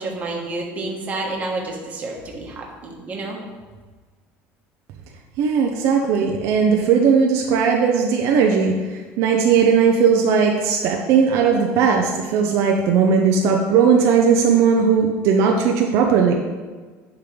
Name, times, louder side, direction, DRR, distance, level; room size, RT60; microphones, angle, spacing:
voice 1, 0.0-3.4, right 2 dB, 30° right, -1 dB, 1.2 m, -29 dB
voice 2, 5.4-16.3, right 6 dB, 65° right, 1 dB, 0.6 m, -17 dB
10.0 x 3.7 x 3.2 m, 1.4 s
cardioid pair, 145°, 5 cm